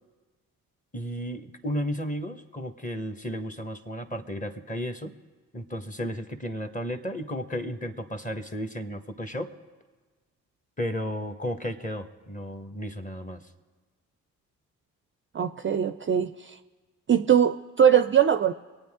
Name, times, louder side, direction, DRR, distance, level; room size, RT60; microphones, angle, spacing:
voice 1, 0.9-5.1 5.5-9.5 10.8-13.4, equal, 20° left, 7 dB, 1.4 m, -33 dB
voice 2, 15.3-16.6 17.1-18.5, right 8 dB, 30° right, 10 dB, 0.5 m, -21 dB
25.5 x 9.1 x 3.7 m, 1.4 s
hypercardioid pair, 40°, 40 cm